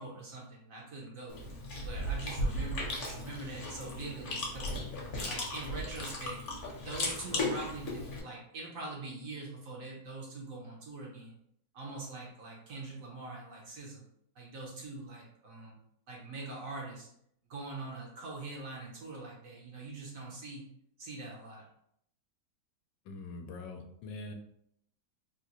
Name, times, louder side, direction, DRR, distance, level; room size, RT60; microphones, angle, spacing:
voice 1, 0.0-1.4 1.8-4.8 5.3-6.4 6.8-11.3 11.7-14.0 14.3-15.8 16.1-17.1 17.5-20.6 21.0-21.6, right 2 dB, 60° right, -2 dB, 1.0 m, -43 dB
Chewing mastication, 1.3-8.2, left 1 dB, 50° left, 1.0 m, -36 dB
voice 2, 23.1-24.3, left 3 dB, 80° left, 4 dB, 1.2 m, -43 dB
3.7 x 2.4 x 2.8 m, 0.71 s
omnidirectional pair, 1.9 m